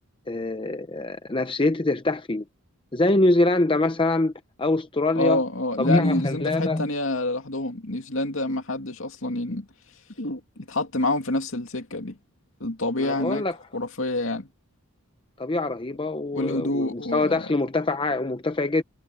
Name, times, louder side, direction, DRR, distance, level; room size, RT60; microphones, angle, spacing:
voice 1, 0.3-2.4 2.9-4.3 4.6-5.4 5.8-6.9 13.0-13.6 15.4-18.8, left 2 dB, 25° left, 0.7 m, -24 dB
voice 2, 5.2-9.7 10.2-12.2 12.6-13.4 13.7-14.5 16.3-17.4, left 2 dB, 65° left, 2.6 m, -27 dB
head